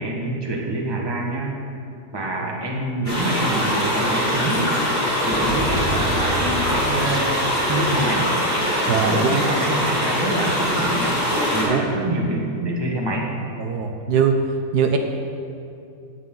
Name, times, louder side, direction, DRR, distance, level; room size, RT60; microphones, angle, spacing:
voice 1, 0.0-1.5 2.1-4.7 5.2-8.3 9.0-11.2 11.5-13.2, right 1 dB, 15° right, -2 dB, 1.4 m, -26 dB
sound 1, 3.1-11.6, equal, 55° left, 3.8 m, -22 dB
sound 2, 5.3-8.3, right 2 dB, 5° left, 0.5 m, -30 dB
voice 2, 8.9-9.4 11.6-11.8 13.6-14.3 14.7-15.0, right 7 dB, 75° right, 4 dB, 1.3 m, -21 dB
16.5 x 8.4 x 3.8 m, 2.5 s
omnidirectional pair, 1.8 m